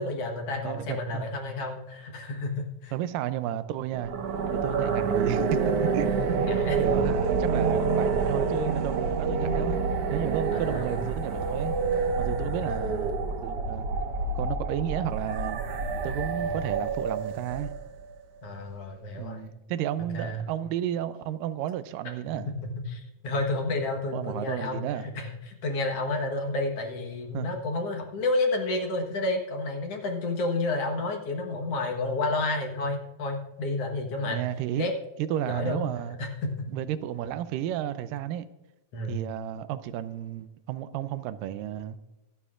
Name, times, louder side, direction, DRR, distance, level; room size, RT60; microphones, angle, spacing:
voice 1, 0.0-2.9 4.8-5.0 6.4-7.0 10.5-11.0 12.6-12.9 16.4-16.6 18.4-19.4 20.1-20.5 22.3-34.4 34.8-34.9 35.5-35.8 36.2-36.7 38.9-39.2, left 2 dB, 55° left, 2.0 m, -31 dB
voice 2, 0.6-1.3 2.9-4.1 4.5-6.3 6.8-9.8 10.1-11.8 12.2-13.9 14.4-15.6 16.0-17.7 19.2-22.5 24.1-25.1 27.3-27.5 34.2-34.9 35.2-36.2 36.7-38.5 39.1-42.0, right 11 dB, 80° right, 2.3 m, -32 dB
sound 1, 3.9-18.0, right 4 dB, 65° right, 1.5 m, -28 dB
24.0 x 11.5 x 2.5 m
omnidirectional pair, 3.9 m